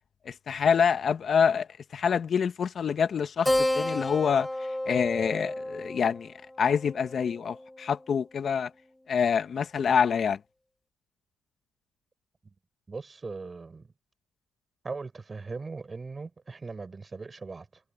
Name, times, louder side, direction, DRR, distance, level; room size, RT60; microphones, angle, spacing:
voice 1, 0.2-8.7 9.1-10.4, left 7 dB, 50° left, 1.5 m, -26 dB
Keyboard (musical), 3.4-8.4, left 1 dB, 5° left, 6.2 m, -32 dB
voice 2, 12.9-13.9 14.8-17.8, right 4 dB, 30° right, 7.0 m, -39 dB
cardioid pair, 90°, 0 cm